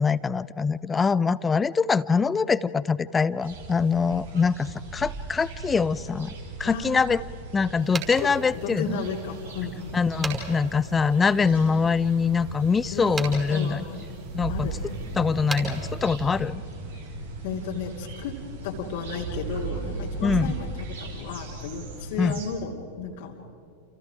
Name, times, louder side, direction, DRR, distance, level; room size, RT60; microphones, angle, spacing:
voice 1, 0.0-6.3 6.6-7.2 7.5-9.0 9.9-13.8 14.3-14.7 15.2-16.6 20.2-20.5 22.2-22.3, left 5 dB, 15° left, 19 dB, 0.6 m, -24 dB
sound 1, 3.4-22.5, right 3 dB, 60° right, 5.1 m, -37 dB
voice 2, 6.6-7.0 8.2-8.3 8.6-10.0 12.9-13.0 13.5-15.2 17.4-18.3 18.6-23.4, left 5 dB, 50° left, -2 dB, 2.8 m, -34 dB
sound 2, 7.8-16.5, right 4 dB, 20° right, 5.5 m, -40 dB
30.0 x 29.0 x 5.0 m, 2.7 s
figure-of-eight pair, 90°, 0 cm